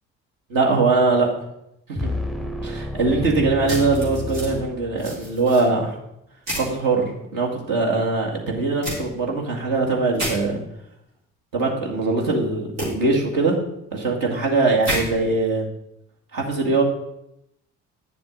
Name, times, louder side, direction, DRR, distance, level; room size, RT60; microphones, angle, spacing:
voice 1, 0.5-1.4 1.9-2.1 2.6-6.0 6.6-10.6 11.5-13.6 13.9-15.7 16.3-16.8, right 3 dB, 60° right, -1 dB, 2.0 m, -22 dB
sound 1, 1.9-5.4, left 2 dB, ahead, 0.6 m, -30 dB
sound 2, 3.7-4.5 5.0-5.6 6.5-6.7 8.8-9.0 10.1-10.3 12.8-12.9 14.8-15.0, right 1 dB, 80° right, 3.2 m, -28 dB
9.3 x 7.0 x 3.8 m, 0.81 s
hypercardioid pair, 45°, 37 cm